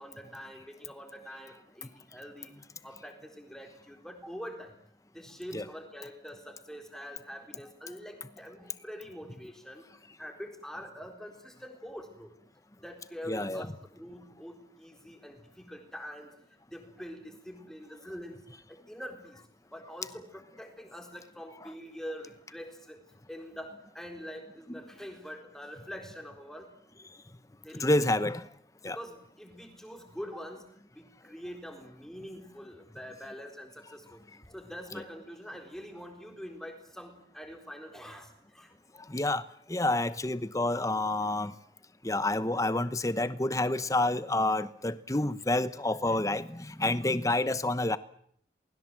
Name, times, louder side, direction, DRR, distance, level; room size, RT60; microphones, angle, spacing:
voice 1, 0.0-2.5 2.8-4.8 5.1-9.9 10.2-12.3 12.8-16.4 16.7-19.4 19.7-26.9 27.6-28.1 28.8-34.2 34.5-38.7, equal, 5° left, 3 dB, 4.0 m, -45 dB
voice 2, 13.3-13.7 27.8-28.5 28.8-29.0 34.9-35.0 39.1-39.4 39.7-41.5 42.0-48.0, left 2 dB, 20° left, 14 dB, 1.0 m, -28 dB
28.0 x 21.0 x 7.6 m, 0.66 s
head